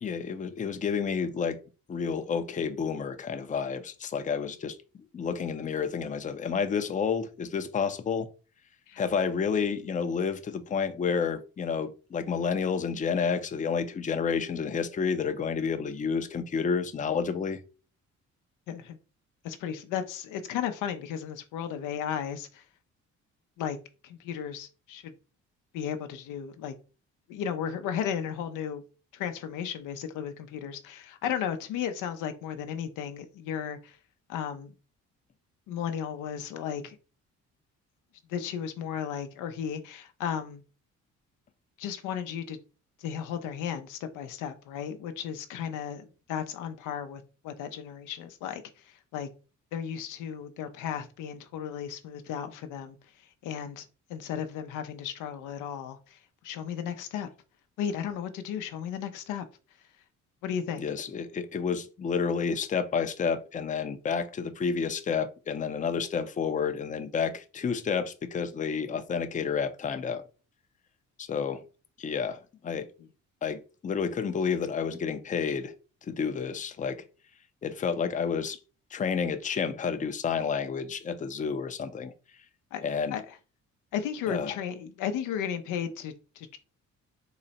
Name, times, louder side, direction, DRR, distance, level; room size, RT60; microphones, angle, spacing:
voice 1, 0.0-1.6 1.9-4.8 5.1-8.3 9.0-17.6 60.8-70.2 71.2-71.6 72.0-72.9 73.4-75.7 76.0-77.0 77.6-78.6 78.9-82.1 82.8-83.1 84.3-84.6, left 6 dB, 25° left, 0.5 m, -30 dB
voice 2, 18.7-19.0 19.4-22.6 23.6-23.8 24.0-25.1 25.7-26.7 27.3-28.8 29.1-34.0 34.3-34.7 35.7-37.0 38.3-40.6 41.8-42.6 43.0-49.3 49.7-53.0 53.4-56.2 56.4-57.3 57.8-59.5 60.4-60.8 82.7-82.8 83.1-83.4 83.9-86.6, left 8 dB, 90° left, 0.6 m, -34 dB
3.9 x 2.1 x 4.0 m
cardioid pair, 90°, 30 cm